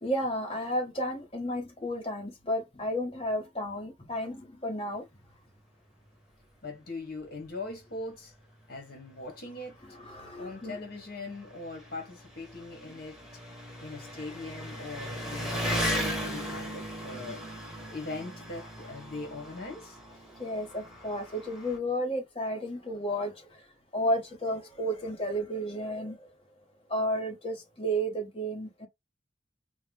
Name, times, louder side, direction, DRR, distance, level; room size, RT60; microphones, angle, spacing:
voice 1, 0.0-5.0 10.0-10.8 20.4-23.6 23.9-26.3 26.9-28.9, equal, 30° left, 1.2 m, -32 dB
voice 2, 6.6-8.3 8.7-9.8 10.4-13.2 13.8-17.4 17.9-20.0, left 2 dB, 55° left, 1.4 m, -41 dB
Engine, 7.2-7.3 7.7-7.8 8.7-8.8 9.1-21.8, equal, ahead, 1.2 m, -37 dB
4.6 x 2.0 x 3.4 m
head